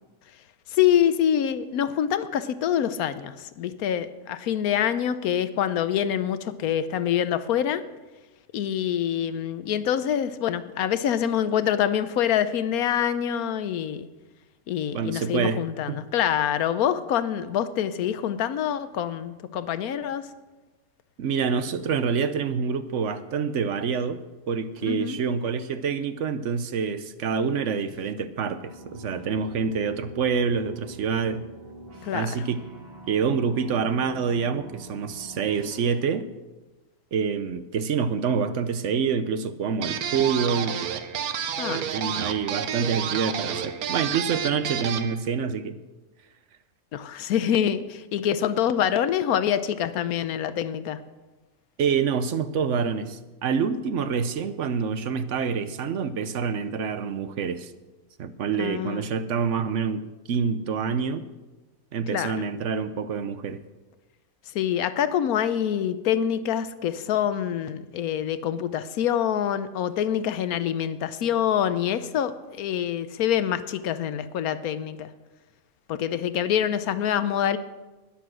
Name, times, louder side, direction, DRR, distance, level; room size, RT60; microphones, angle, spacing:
voice 1, 0.7-7.8 8.5-14.1 14.7-20.3 24.9-25.2 32.0-32.4 41.6-41.9 46.9-51.0 58.6-59.0 62.1-62.3 64.5-75.1 75.9-77.6, left 9 dB, 85° left, 13 dB, 1.2 m, -25 dB
voice 2, 14.9-15.6 15.9-16.0 21.2-31.4 32.1-32.6 33.1-36.3 37.1-40.8 41.7-45.8 51.8-57.7 58.2-60.0 60.3-61.3 61.9-63.6, right 6 dB, 60° right, 12 dB, 1.0 m, -27 dB
sound 1, 28.6-35.9, right 1 dB, 40° right, 3.0 m, -45 dB
sound 2, 39.8-45.1, right 8 dB, 80° right, 1.3 m, -30 dB
12.5 x 10.5 x 6.2 m, 1.2 s
omnidirectional pair, 1.5 m